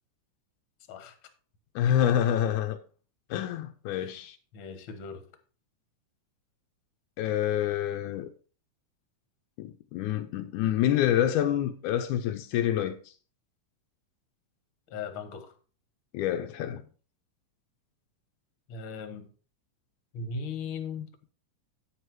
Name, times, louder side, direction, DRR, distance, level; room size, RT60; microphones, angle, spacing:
voice 1, 1.8-2.8 3.3-4.4 7.2-8.3 9.6-13.0 16.1-16.8, left 10 dB, 80° left, 2.1 m, -27 dB
voice 2, 4.5-5.3 14.9-15.5 18.7-19.3 20.1-21.1, left 5 dB, 50° left, 1.7 m, -38 dB
9.7 x 6.5 x 4.6 m
omnidirectional pair, 3.6 m